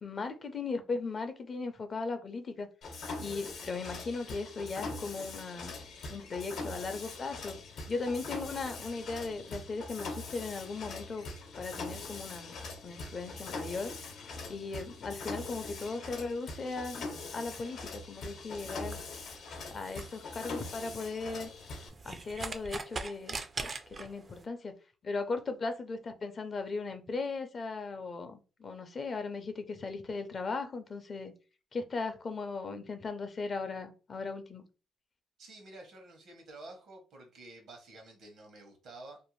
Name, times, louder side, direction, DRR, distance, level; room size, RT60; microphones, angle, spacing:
voice 1, 0.0-2.7 3.2-5.8 6.1-7.6 7.9-11.3 11.6-12.5 12.8-13.9 14.5-17.1 17.3-19.0 19.7-21.5 22.0-24.7 25.0-31.3 31.7-34.6, left 4 dB, 40° left, 0.4 m, -37 dB
Mechanisms, 2.8-21.9, left 3 dB, 75° left, 0.7 m, -42 dB
Plastic bottle dropped and lid noises, 18.6-24.4, right 3 dB, 35° right, 0.3 m, -43 dB
voice 2, 35.4-39.2, right 2 dB, 70° right, 1.0 m, -50 dB
2.5 x 2.1 x 3.1 m
cardioid pair, 90°, 0 cm